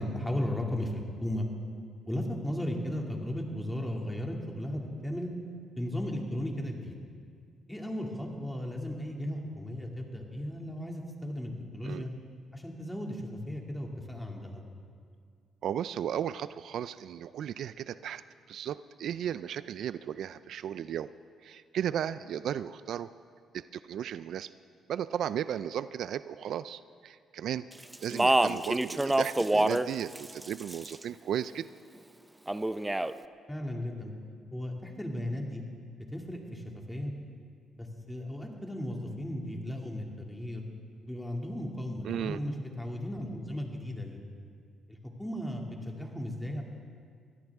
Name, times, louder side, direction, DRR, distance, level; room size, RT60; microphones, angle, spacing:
voice 1, 0.0-1.5 2.1-5.3 5.8-7.0 7.7-12.1 12.5-14.6 33.5-34.1 34.5-35.6 36.1-37.1 37.8-40.7 41.0-44.2 45.2-46.6, left 1 dB, 5° left, 1 dB, 2.4 m, -35 dB
voice 2, 15.6-18.2 18.5-21.1 21.4-23.1 23.5-24.5 24.9-27.6 28.0-31.7 42.0-42.4, right 9 dB, 70° right, 15 dB, 0.3 m, -35 dB
Speech, 27.9-29.9 30.2-31.0 32.5-33.1, right 1 dB, 10° right, 0.5 m, -26 dB
23.0 x 16.0 x 3.6 m, 2.2 s
cardioid pair, 90°, 0 cm